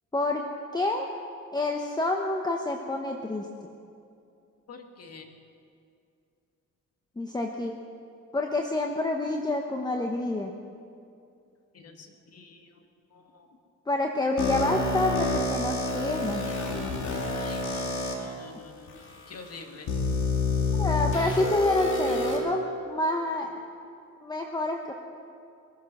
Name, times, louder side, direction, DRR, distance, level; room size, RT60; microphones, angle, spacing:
voice 1, 0.7-1.1 1.5-3.5 7.2-7.8 8.3-10.5 13.9-16.4 20.7-23.6 24.2-24.9, left 2 dB, 15° left, 2 dB, 1.0 m, -28 dB
voice 2, 4.7-5.3 11.7-12.7 13.1-13.5 17.3-19.9, left 4 dB, 55° left, 4 dB, 1.9 m, -47 dB
sound 1, 14.4-18.1 18.9-19.0 19.9-22.4, left 3 dB, 70° left, 2.6 m, -28 dB
21.5 x 9.3 x 6.1 m, 2.5 s
cardioid pair, 90°, 30 cm